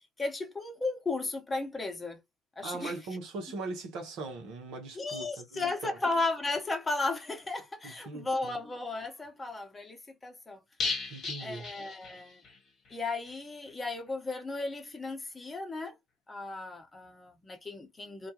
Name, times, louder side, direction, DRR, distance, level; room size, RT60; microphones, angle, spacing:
voice 1, 0.2-2.2 2.6-3.0 4.9-10.6 11.4-12.4 12.9-16.0 16.3-18.3, left 3 dB, 20° left, 0.9 m, -35 dB
voice 2, 2.6-6.0 7.8-8.6 11.1-11.7, right 3 dB, 65° right, 0.9 m, -40 dB
sound 1, 10.8-12.6 12.9-13.0 13.3-13.4, left 3 dB, 50° left, 1.0 m, -36 dB
2.3 x 2.2 x 2.8 m
hypercardioid pair, 60°, 0 cm